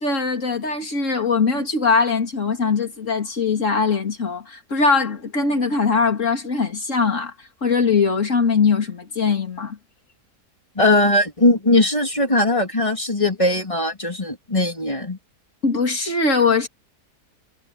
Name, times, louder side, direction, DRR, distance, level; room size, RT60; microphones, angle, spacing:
voice 1, 0.0-9.8 15.6-16.7, left 4 dB, 50° left, 3.3 m, -21 dB
voice 2, 10.7-15.2, left 2 dB, 20° left, 3.2 m, -19 dB
omnidirectional pair, 1.7 m